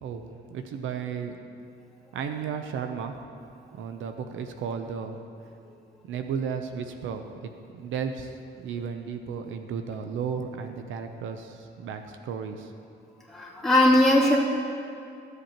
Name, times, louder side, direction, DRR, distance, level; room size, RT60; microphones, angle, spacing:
voice 1, 0.0-1.4 2.1-3.1 3.7-5.2 6.1-12.7, right 6 dB, 80° right, 6 dB, 0.6 m, -34 dB
voice 2, 13.3-14.4, left 1 dB, ahead, -8 dB, 2.7 m, -19 dB
15.0 x 8.0 x 2.9 m, 2.5 s
cardioid pair, 90°, 20 cm